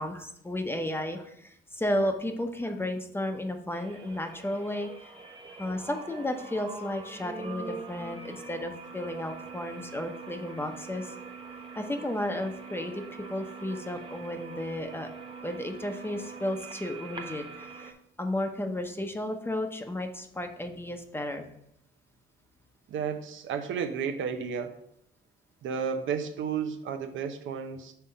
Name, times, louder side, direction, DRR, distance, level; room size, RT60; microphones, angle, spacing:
voice 1, 0.0-4.9 5.6-11.1 11.8-15.1 15.4-21.5, left 1 dB, 10° left, 5 dB, 0.8 m, -33 dB
sound 1, 3.7-17.9, right 4 dB, 25° right, 0.9 m, -43 dB
voice 2, 22.9-24.8 25.6-27.9, right 7 dB, 75° right, 7 dB, 0.8 m, -32 dB
5.8 x 3.6 x 5.4 m, 0.73 s
cardioid pair, 90°, 20 cm